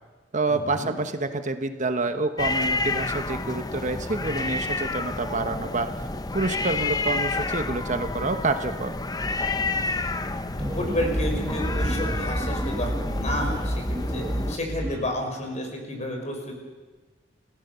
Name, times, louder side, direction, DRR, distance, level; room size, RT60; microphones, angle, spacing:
voice 1, 0.3-5.9 6.3-9.0, right 3 dB, 40° right, 8 dB, 1.1 m, -28 dB
sound 1, 2.4-14.6, left 3 dB, 20° left, 0.8 m, -30 dB
voice 2, 9.7-14.2 14.5-16.5, left 1 dB, 40° left, 2 dB, 5.5 m, -31 dB
sound 2, 10.6-15.1, equal, 20° right, 1.7 m, -29 dB
29.5 x 16.0 x 6.9 m, 1.3 s
head